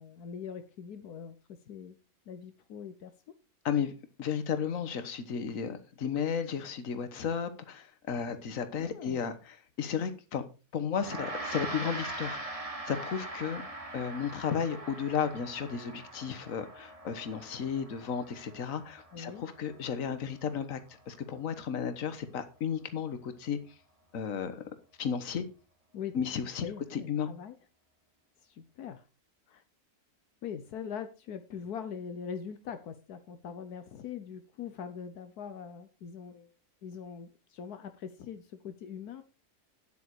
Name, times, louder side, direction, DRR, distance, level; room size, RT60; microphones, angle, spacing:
voice 1, 0.0-1.4 1.7-2.0 2.3-3.1 8.8-9.2 19.1-19.4 25.9-26.2 26.6-27.6 28.4-29.0 29.5-29.6 30.4-36.5 36.8-39.2, left 7 dB, 80° left, 1.4 m, -42 dB
voice 2, 4.2-10.4 10.7-12.4 12.9-13.6 13.9-20.8 21.1-23.6 24.1-24.6 25.0-25.4 26.1-27.3, left 7 dB, 60° left, 1.6 m, -33 dB
Gong, 11.0-20.5, right 2 dB, 25° right, 1.6 m, -42 dB
9.6 x 8.4 x 4.7 m
omnidirectional pair, 1.6 m